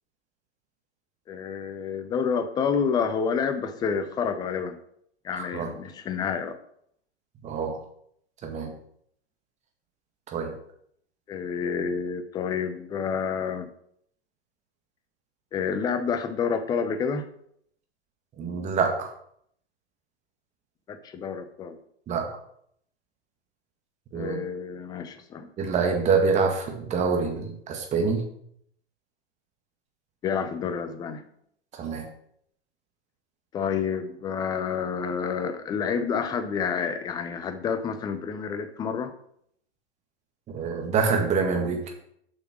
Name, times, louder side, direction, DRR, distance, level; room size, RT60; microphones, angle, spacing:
voice 1, 1.3-4.8 5.2-6.6 11.3-13.7 15.5-17.3 20.9-21.8 24.1-25.5 30.2-31.2 33.5-39.1, left 6 dB, 10° left, 9 dB, 0.6 m, -29 dB
voice 2, 5.3-5.7 7.4-7.8 8.4-8.8 10.3-10.5 18.4-19.1 22.1-22.3 24.1-24.4 25.6-28.2 31.8-32.1 40.5-41.8, right 5 dB, 20° right, 2 dB, 1.9 m, -26 dB
7.6 x 5.8 x 6.1 m, 0.69 s
hypercardioid pair, 125°, 33 cm